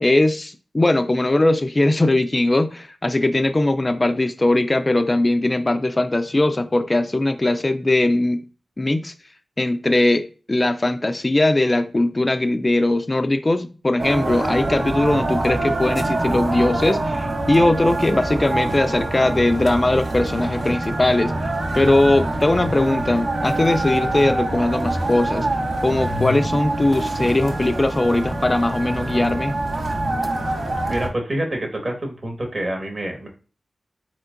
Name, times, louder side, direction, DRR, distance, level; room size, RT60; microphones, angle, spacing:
voice 1, 0.0-8.4 8.8-9.1 9.6-21.3 21.8-25.5 25.8-29.6, left 2 dB, 25° left, 0.3 m, -20 dB
sound 1, 14.0-31.1, right 2 dB, 65° right, 0.9 m, -25 dB
voice 2, 30.8-33.3, right 1 dB, 45° right, 1.4 m, -27 dB
4.4 x 4.3 x 2.5 m
wide cardioid pair, 95°, 0 cm